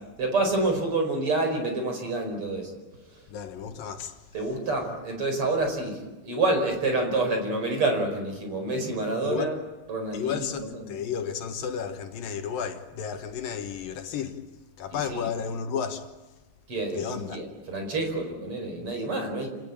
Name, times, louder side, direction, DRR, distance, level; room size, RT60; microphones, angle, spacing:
voice 1, 0.2-2.7 3.1-3.2 4.3-9.6 9.9-10.9 14.9-15.3 16.7-19.5, right 2 dB, 40° right, 5.6 m, -28 dB
voice 2, 3.3-4.2 9.2-9.5 10.1-14.4 14.8-16.1 16.9-17.4, left 7 dB, 75° left, 3.1 m, -33 dB
28.0 x 18.5 x 8.8 m
omnidirectional pair, 4.1 m